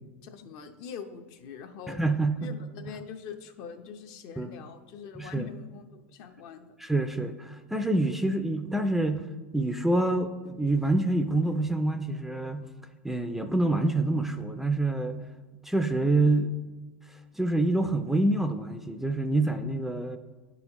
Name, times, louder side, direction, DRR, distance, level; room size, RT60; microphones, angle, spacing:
voice 1, 0.2-2.0 2.4-6.8, left 7 dB, 55° left, 7 dB, 0.7 m, -43 dB
voice 2, 1.9-2.5 4.4-4.5 5.2-5.5 6.8-9.3 9.5-12.7 13.0-15.2 15.6-16.6 17.4-20.2, right 2 dB, 5° right, 7 dB, 0.3 m, -26 dB
10.0 x 4.1 x 2.9 m, 1.3 s
supercardioid pair, 115°, 7 cm